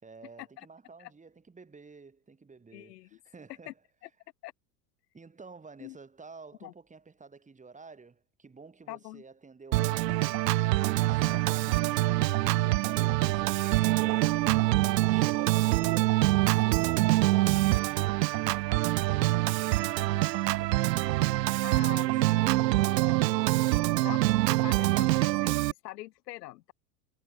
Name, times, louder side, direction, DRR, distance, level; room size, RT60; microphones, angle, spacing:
voice 1, 0.0-3.8 5.1-10.4 10.8-14.6 14.9-21.4 21.7-24.9, right 4 dB, 15° right, 4.9 m, -51 dB
voice 2, 2.7-3.2 3.7-3.8 4.4-4.5 5.8-6.0 6.6-6.7 8.9-9.2 21.6-22.4 24.0-25.6 25.8-26.7, left 17 dB, 80° left, 4.1 m, -43 dB
Organ, 9.7-25.7, right 18 dB, 85° right, 1.0 m, -25 dB
supercardioid pair, 115°, 47 cm